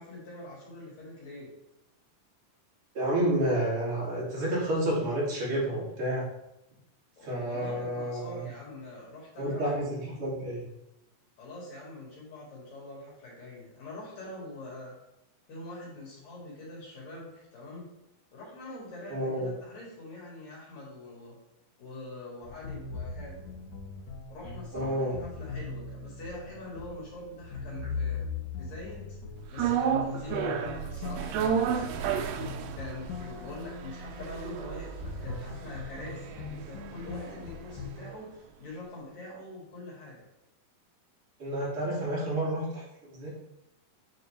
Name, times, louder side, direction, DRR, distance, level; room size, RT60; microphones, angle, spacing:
voice 1, 0.0-1.5 7.2-9.8 11.4-14.9 15.5-17.8 18.3-21.3 21.8-23.4 24.3-28.2 28.6-29.2 29.5-40.3, left 2 dB, 55° left, -5 dB, 3.2 m, -44 dB
voice 2, 2.9-6.2 7.2-8.4 9.4-10.7 19.1-19.5 24.7-25.1 30.3-30.6 41.4-42.8 43.1-43.3, right 1 dB, 40° right, -7 dB, 3.1 m, -30 dB
sound 1, 22.4-38.0, left 4 dB, 70° left, 1.8 m, -40 dB
sound 2, 29.6-37.9 38.1-38.2, right 8 dB, 80° right, 2.2 m, -33 dB
9.2 x 4.5 x 3.3 m, 0.88 s
omnidirectional pair, 4.1 m